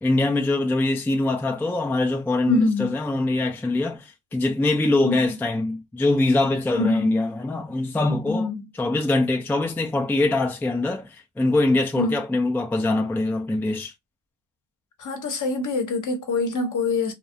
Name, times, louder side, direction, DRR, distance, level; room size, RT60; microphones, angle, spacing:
voice 1, 0.0-8.5 8.8-13.9, left 2 dB, 5° left, 0.4 m, -23 dB
voice 2, 2.5-2.9 5.0-5.4 6.7-7.1 8.3-8.6 12.0-12.2 15.0-17.1, left 3 dB, 50° left, 0.9 m, -25 dB
2.3 x 2.1 x 2.5 m
supercardioid pair, 65°, 39 cm